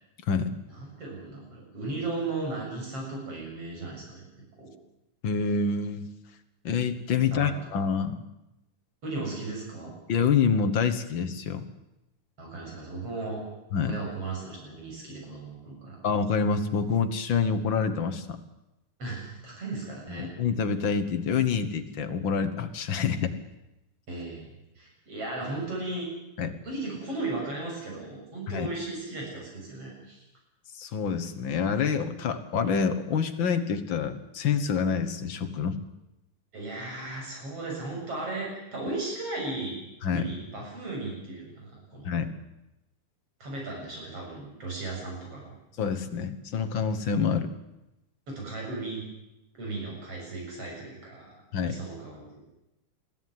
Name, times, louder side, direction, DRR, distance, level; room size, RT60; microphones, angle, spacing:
voice 1, 0.7-4.3 4.6-4.7 7.3-7.5 9.0-9.9 12.4-13.4 13.8-16.0 19.0-20.3 24.1-24.5 24.8-26.1 26.6-30.2 36.5-39.8 40.1-42.1 43.4-45.6 48.3-49.0 49.5-51.4 51.6-52.4, right 2 dB, 45° right, -1 dB, 8.1 m, -36 dB
voice 2, 5.2-6.1 6.6-8.2 10.1-11.6 13.7-14.0 16.0-18.4 20.1-23.3 26.4-26.6 28.5-28.7 30.7-35.8 40.0-40.3 42.0-42.3 45.8-47.5 51.5-51.8, left 6 dB, 50° left, 9 dB, 1.5 m, -27 dB
22.5 x 14.5 x 9.5 m, 0.92 s
omnidirectional pair, 3.6 m